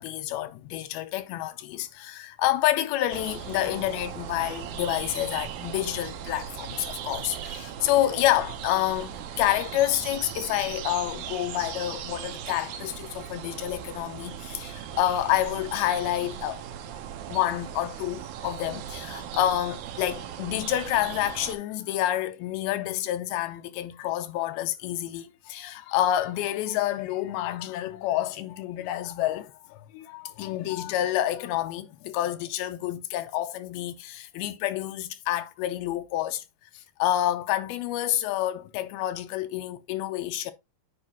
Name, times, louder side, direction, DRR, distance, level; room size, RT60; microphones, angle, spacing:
voice 1, 0.0-16.6 17.3-36.4 36.7-40.5, left 13 dB, 85° left, 2.6 m, -28 dB
sound 1, 3.1-21.6, right 9 dB, 75° right, 1.8 m, -38 dB
9.6 x 4.8 x 2.8 m
omnidirectional pair, 4.3 m